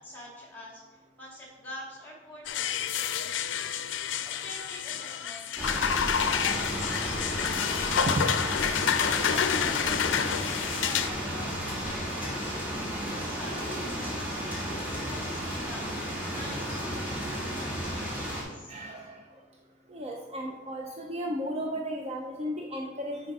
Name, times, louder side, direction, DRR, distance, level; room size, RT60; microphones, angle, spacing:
voice 1, 0.0-18.7, left 1 dB, 10° left, -3 dB, 2.0 m, -47 dB
sound 1, 2.5-11.1, left 8 dB, 85° left, 0.4 m, -29 dB
sound 2, 5.6-18.4, equal, 10° right, 1.8 m, -33 dB
voice 2, 18.7-19.3 19.9-23.2, equal, 35° right, 1 dB, 0.5 m, -34 dB
6.5 x 5.1 x 4.7 m, 1.3 s
head